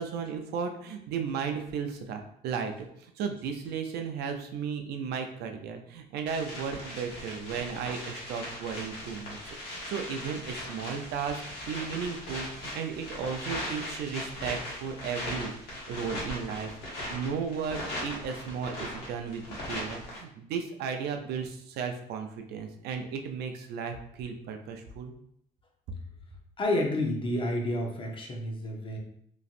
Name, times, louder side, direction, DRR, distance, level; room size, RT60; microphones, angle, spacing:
voice 1, 0.0-2.7 3.0-25.1, right 6 dB, 75° right, 5 dB, 0.5 m, -35 dB
sound 1, 6.3-20.2, left 1 dB, 80° left, 1.3 m, -39 dB
voice 2, 26.6-29.0, left 1 dB, 30° left, 1 dB, 0.6 m, -30 dB
3.0 x 2.5 x 2.5 m, 0.70 s
cardioid pair, 110°, 17 cm